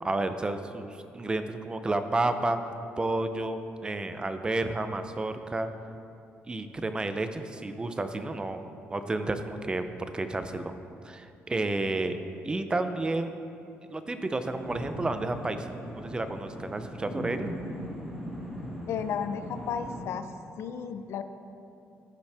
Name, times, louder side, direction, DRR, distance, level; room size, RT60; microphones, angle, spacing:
voice 1, 0.0-2.6 3.0-5.7 6.5-9.9 10.1-10.7 11.0-12.2 12.4-13.3 13.9-15.7 15.9-17.5, right 2 dB, 20° right, 9 dB, 0.5 m, -31 dB
sound 1, 14.5-20.0, equal, 5° right, 2.3 m, -39 dB
voice 2, 18.9-20.3 20.6-21.2, left 7 dB, 70° left, 9 dB, 0.5 m, -33 dB
15.0 x 5.5 x 3.4 m, 2.6 s
cardioid pair, 115°, 5 cm